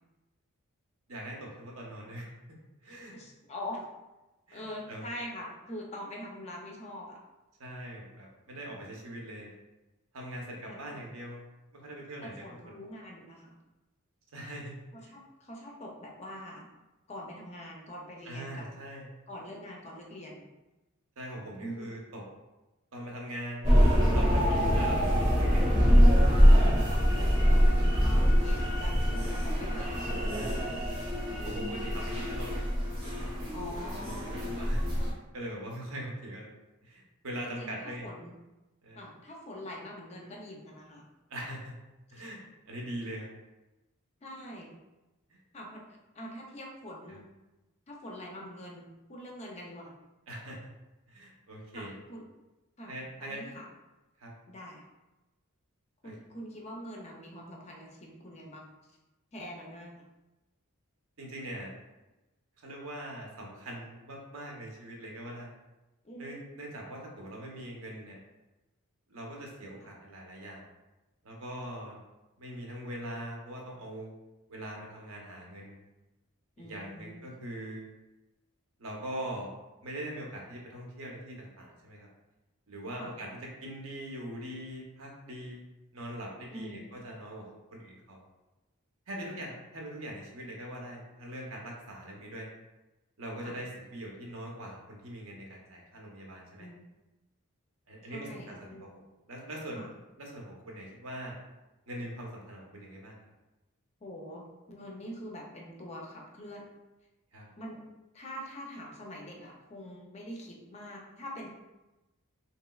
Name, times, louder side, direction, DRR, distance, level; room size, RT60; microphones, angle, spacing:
voice 1, 1.1-2.3 2.8-3.2 4.5-5.0 7.6-9.5 10.1-11.4 11.7-12.7 14.3-15.2 18.3-19.1 21.2-22.2 22.9-23.7 24.1-25.7 26.5-26.7 30.3-30.5 31.1-33.6 34.0-34.9 35.3-36.5 36.8-38.1 38.8-39.0 41.3-41.7 42.1-42.4 42.7-43.3 45.3-45.4 47.1-47.2 50.3-50.6 51.1-51.9 52.9-53.4 54.2-54.3 56.0-56.1 61.2-61.7 62.6-65.5 66.2-68.2 69.1-70.7 71.2-72.0 72.4-74.1 74.5-75.8 76.6-77.9 78.8-79.5 79.8-82.1 82.7-83.3 83.6-85.6 85.9-87.4 87.7-88.2 89.1-92.5 93.2-96.7 97.9-99.0 99.3-99.8 100.2-101.3 101.9-103.2 107.3-107.5, right 1 dB, 65° right, -1 dB, 0.7 m, -42 dB
voice 2, 3.1-3.8 4.5-7.2 10.7-11.0 12.2-13.5 14.9-16.7 17.1-18.7 19.3-20.5 21.6-21.9 24.6-24.8 26.7-30.1 30.4-30.7 33.5-34.7 37.4-38.4 39.0-41.0 42.2-42.3 44.2-44.8 45.5-45.9 46.2-47.2 47.9-49.9 51.7-52.3 52.8-52.9 53.2-53.7 54.5-54.8 56.0-58.7 59.3-60.0 66.0-66.4 69.8-69.9 76.6-77.3 83.0-83.1 86.5-86.8 89.2-89.4 93.4-93.6 96.6-96.8 98.1-98.9 99.7-99.9 104.0-106.6 107.6-107.8 108.1-111.5, equal, 30° left, -1 dB, 0.5 m, -44 dB
sound 1, 23.6-35.1, equal, 20° right, 0.8 m, -24 dB
3.0 x 2.9 x 2.3 m, 1.0 s
head